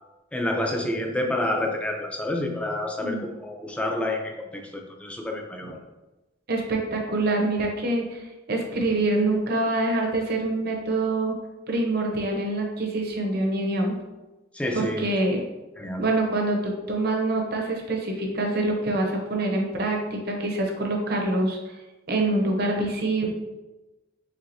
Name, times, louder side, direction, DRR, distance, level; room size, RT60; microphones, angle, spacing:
voice 1, 0.3-5.8 14.5-15.0 15.8-16.1, left 1 dB, 5° left, 2 dB, 0.4 m, -28 dB
voice 2, 6.5-11.3 11.7-14.0 14.7-15.4 16.0-21.6 22.1-23.3, right 2 dB, 50° right, 1 dB, 0.8 m, -25 dB
4.4 x 3.7 x 2.6 m, 1.1 s
head